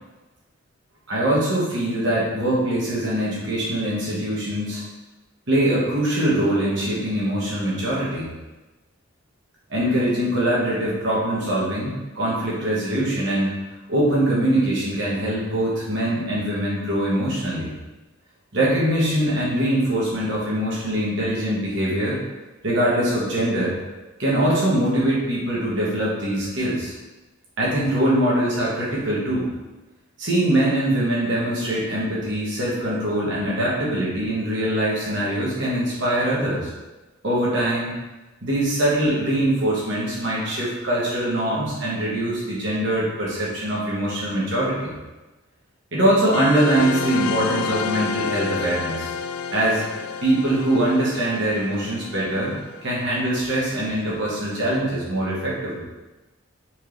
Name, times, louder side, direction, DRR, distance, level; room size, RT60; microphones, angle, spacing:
voice 1, 1.1-4.8 5.5-8.3 9.7-13.6 13.9-17.7 18.5-22.2 22.6-23.7 24.2-26.9 27.6-29.5 30.2-36.7 37.2-37.9 38.4-44.9 45.9-49.1 49.5-49.8 50.2-52.6 52.8-55.9, right 1 dB, 55° right, -6 dB, 1.4 m, -23 dB
sound 1, 46.3-53.4, left 6 dB, 80° left, 0.3 m, -30 dB
4.5 x 3.7 x 3.2 m, 1.1 s
head